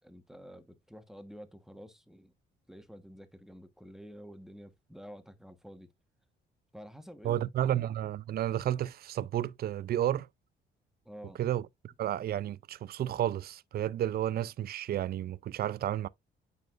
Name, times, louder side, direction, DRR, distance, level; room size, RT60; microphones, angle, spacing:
voice 1, 0.0-2.3 2.7-5.9 6.7-7.4 11.0-11.4, equal, ahead, 1.2 m, -49 dB
voice 2, 7.2-10.3 11.4-11.7 12.0-16.1, right 11 dB, 50° right, 0.4 m, -31 dB
9.2 x 4.2 x 2.5 m
cardioid pair, 90°, 20 cm